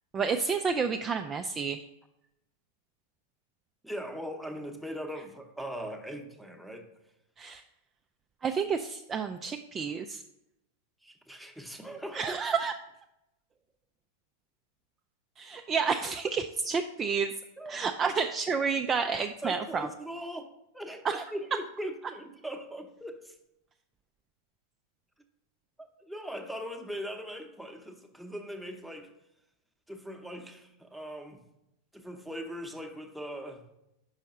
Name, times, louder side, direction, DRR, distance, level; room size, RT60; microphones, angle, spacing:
voice 1, 0.1-1.9 7.4-7.6 8.4-10.2 12.1-12.7 15.4-17.4 17.7-19.9 21.0-21.2, right 5 dB, 20° right, 6 dB, 0.3 m, -30 dB
voice 2, 3.8-6.9 11.0-12.4 17.6-18.1 19.4-23.4 25.8-29.1 29.9-31.4 31.9-33.6, equal, ahead, 4 dB, 0.8 m, -40 dB
5.5 x 5.3 x 5.1 m, 0.87 s
figure-of-eight pair, 90°, 0 cm